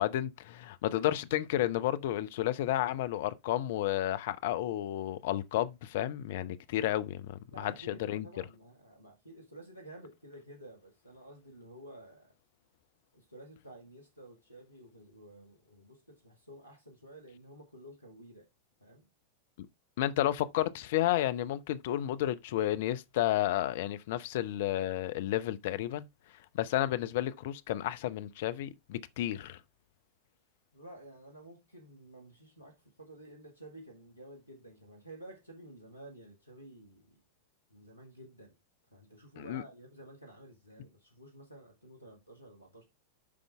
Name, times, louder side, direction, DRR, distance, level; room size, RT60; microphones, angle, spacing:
voice 1, 0.0-7.7 8.1-8.3 20.0-26.1 26.5-29.6 39.4-39.6, left 13 dB, 55° left, 0.7 m, -31 dB
voice 2, 7.5-12.3 13.1-18.5 18.8-19.1 30.7-37.2 37.7-38.5 38.9-42.8, right 1 dB, 90° left, 1.6 m, -52 dB
8.6 x 5.3 x 3.4 m
figure-of-eight pair, 90°, 0 cm